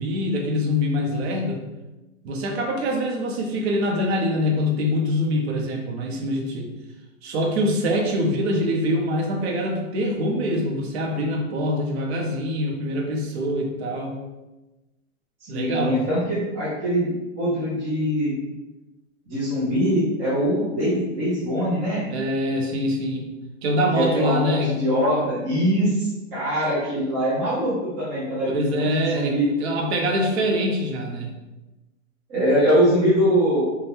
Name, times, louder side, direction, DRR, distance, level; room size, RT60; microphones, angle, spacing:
voice 1, 0.0-1.6 2.2-6.7 7.2-14.2 15.5-16.1 22.1-23.3 23.6-24.7 28.4-31.3, equal, 50° right, 0 dB, 0.7 m, -24 dB
voice 2, 15.5-17.1 17.4-18.4 19.3-22.0 23.9-29.4 32.3-33.7, equal, 20° right, -10 dB, 0.5 m, -22 dB
2.5 x 2.2 x 3.4 m, 1.1 s
hypercardioid pair, 145°, 40 cm